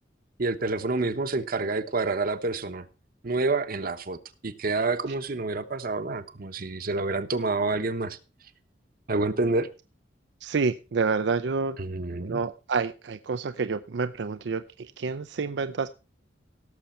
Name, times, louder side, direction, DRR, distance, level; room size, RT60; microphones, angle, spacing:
voice 1, 0.4-2.8 3.2-4.2 4.4-8.2 9.1-9.7 11.8-12.4, right 3 dB, 50° right, 1.0 m, -28 dB
voice 2, 10.4-11.8 12.1-14.6 15.0-15.9, right 4 dB, 70° right, 0.5 m, -28 dB
17.0 x 6.8 x 4.3 m
head